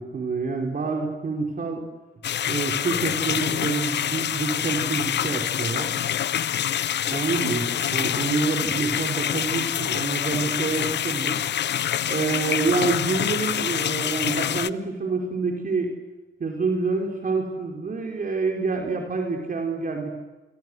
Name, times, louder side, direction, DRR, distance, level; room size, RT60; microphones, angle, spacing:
voice 1, 0.0-1.8 2.5-5.9 7.1-11.4 12.1-15.9 16.4-20.2, right 4 dB, 45° right, 1 dB, 4.8 m, -27 dB
sound 1, 2.2-14.7, left 10 dB, 60° left, 0.8 m, -26 dB
27.0 x 23.0 x 8.1 m, 1.1 s
cardioid pair, 80°, 20 cm